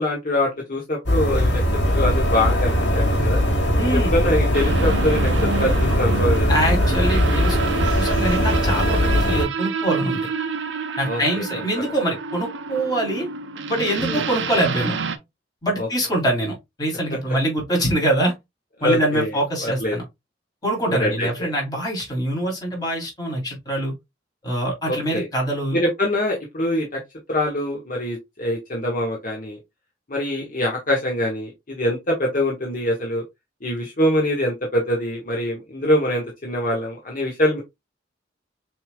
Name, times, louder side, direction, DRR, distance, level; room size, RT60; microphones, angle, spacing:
voice 1, 0.0-1.6 1.9-3.4 3.9-6.5 11.1-11.2 11.8-11.9 14.1-14.2 15.8-15.9 17.3-17.4 18.8-20.0 20.9-21.5 24.9-25.3 25.7-27.0 27.3-29.6 30.1-33.2 33.6-37.6, left 1 dB, 50° left, 1.4 m, -24 dB
sound 1, 1.1-9.4, equal, 65° left, 1.9 m, -20 dB
voice 2, 3.8-4.1 6.5-7.6 7.9-10.3 11.0-13.3 13.7-15.0 15.6-18.3 18.8-20.0 20.6-23.9 24.4-25.8, right 1 dB, 20° left, 2.8 m, -24 dB
sound 2, 4.5-15.2, right 4 dB, 80° right, 0.8 m, -28 dB
6.7 x 3.4 x 2.2 m
head